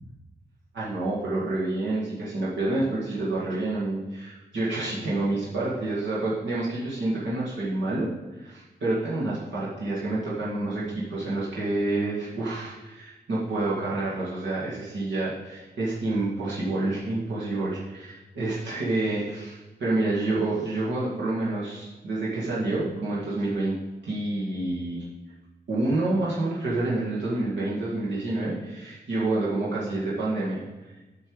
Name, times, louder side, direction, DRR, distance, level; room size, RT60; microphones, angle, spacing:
voice 1, 0.7-8.1 8.4-23.7 24.0-25.1 25.7-30.6, right 2 dB, 85° right, -7 dB, 1.9 m, -28 dB
8.8 x 5.6 x 4.8 m, 1.2 s
cardioid pair, 75°, 18 cm